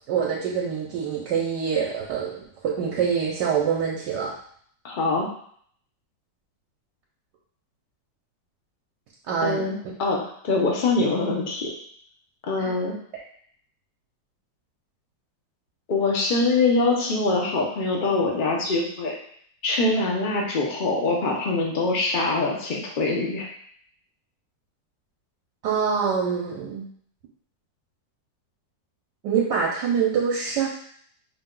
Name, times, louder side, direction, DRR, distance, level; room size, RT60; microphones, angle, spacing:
voice 1, 0.1-4.3 9.3-9.7 12.6-12.7 25.6-26.9 29.2-30.7, right 6 dB, 70° right, -3 dB, 1.2 m, -25 dB
voice 2, 4.8-5.3 9.4-10.2 10.4-11.7 12.4-12.9 15.9-19.1 19.6-23.5, left 3 dB, 50° left, -1 dB, 0.5 m, -24 dB
5.7 x 2.2 x 3.7 m, 0.62 s
omnidirectional pair, 2.0 m